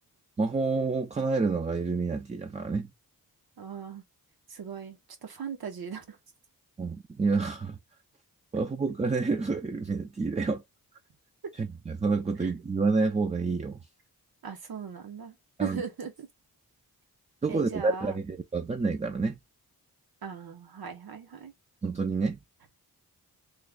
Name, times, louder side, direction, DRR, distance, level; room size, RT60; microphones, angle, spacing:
voice 1, 0.4-2.9 6.8-7.8 8.5-10.6 11.6-13.8 15.6-15.8 17.4-19.4 21.8-22.4, right 4 dB, 20° right, 0.4 m, -28 dB
voice 2, 3.6-4.0 4.5-6.2 12.4-12.5 14.4-16.3 17.5-18.2 20.2-21.5, right 7 dB, 75° right, 1.2 m, -39 dB
3.2 x 2.3 x 3.6 m
wide cardioid pair, 105°, 37 cm